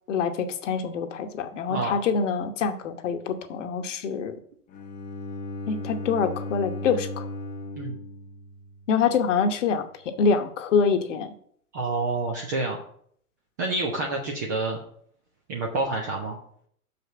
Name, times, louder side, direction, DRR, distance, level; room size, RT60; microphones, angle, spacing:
voice 1, 0.1-4.3 5.7-7.2 8.9-11.3, left 5 dB, 55° left, 8 dB, 1.1 m, -25 dB
Bowed string instrument, 4.7-8.8, left 2 dB, 15° left, 0.8 m, -36 dB
voice 2, 11.7-12.8 13.6-14.8 15.5-16.4, right 2 dB, 15° right, 1 dB, 0.3 m, -28 dB
6.3 x 5.3 x 6.7 m, 0.63 s
figure-of-eight pair, 105°, 45 cm